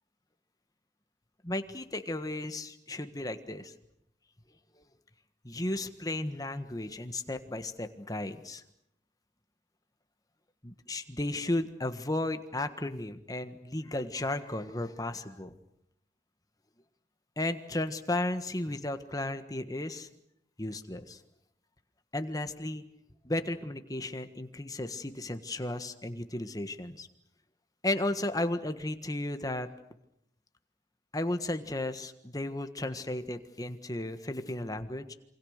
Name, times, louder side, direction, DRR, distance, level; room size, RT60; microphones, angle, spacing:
voice 1, 1.4-3.7 5.4-8.6 10.6-15.6 17.4-20.1 20.6-21.2 22.1-22.8 23.2-27.1 27.8-29.7 31.1-35.1, left 1 dB, 20° left, 9 dB, 1.5 m, -34 dB
28.0 x 25.0 x 6.6 m, 0.78 s
head